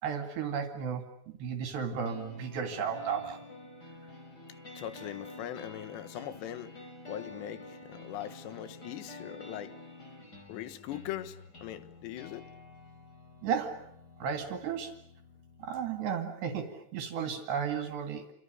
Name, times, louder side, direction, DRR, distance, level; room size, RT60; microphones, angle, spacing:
voice 1, 0.0-1.0 1.4-3.4 13.4-13.9 14.2-14.9 15.6-18.3, right 7 dB, 70° right, 4.2 m, -34 dB
sound 1, 2.0-16.0, left 2 dB, 20° left, 5.1 m, -49 dB
voice 2, 4.8-6.7 7.0-9.8 10.5-12.5, left 12 dB, 75° left, 3.5 m, -41 dB
29.5 x 27.0 x 6.6 m
omnidirectional pair, 5.3 m